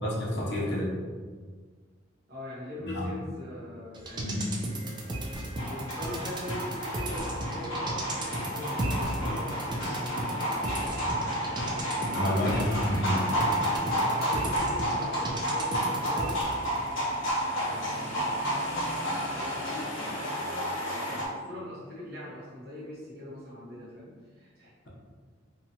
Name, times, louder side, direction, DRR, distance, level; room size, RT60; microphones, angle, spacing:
voice 1, 0.0-0.9 2.8-3.1 4.2-4.5 12.1-13.2, left 1 dB, 60° left, -4 dB, 0.7 m, -29 dB
voice 2, 2.3-4.3 5.6-10.8 12.0-13.6 14.1-16.4 17.6-18.5 19.3-20.4 21.0-24.7, left 1 dB, 55° right, -6 dB, 0.9 m, -42 dB
sound 1, 3.9-16.8 17.1-17.2, right 1 dB, 25° right, 0.3 m, -35 dB
sound 2, 5.6-21.3, equal, 85° left, 0.8 m, -31 dB
2.8 x 2.3 x 2.7 m, 1.5 s
head